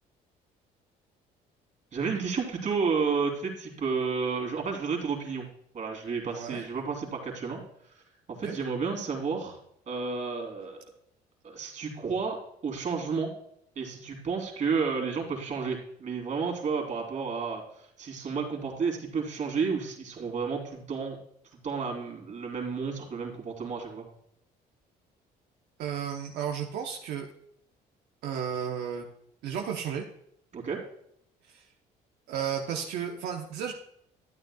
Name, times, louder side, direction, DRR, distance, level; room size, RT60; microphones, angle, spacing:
voice 1, 1.9-5.5 5.7-7.6 8.3-9.6 9.9-10.8 11.4-13.3 13.7-21.2 21.6-24.1 30.5-30.8, right 5 dB, 45° right, 0 dB, 3.1 m, -31 dB
voice 2, 6.2-6.6 8.4-8.5 25.8-27.3 28.2-29.0 29.4-30.0 31.5-31.6 32.3-33.7, right 8 dB, 80° right, 1 dB, 1.0 m, -33 dB
12.0 x 9.2 x 2.3 m, 0.73 s
cardioid pair, 110°, 17 cm